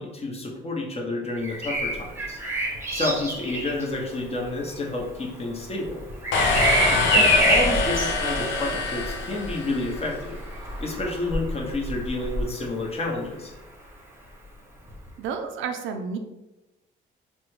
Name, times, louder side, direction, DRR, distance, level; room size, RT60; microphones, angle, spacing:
voice 1, 0.0-2.4 2.9-6.0 7.1-10.4 10.8-13.5, left 2 dB, 30° left, -1 dB, 0.8 m, -30 dB
Bird vocalization bird call bird song, 1.3-13.2 14.9-15.1, right 1 dB, 10° right, 0.8 m, -28 dB
sound 1, 6.3-10.1, left 3 dB, 70° left, 0.5 m, -24 dB
voice 2, 15.2-16.2, right 6 dB, 80° right, 6 dB, 0.4 m, -31 dB
3.4 x 2.2 x 3.1 m, 0.99 s
cardioid pair, 90°, 20 cm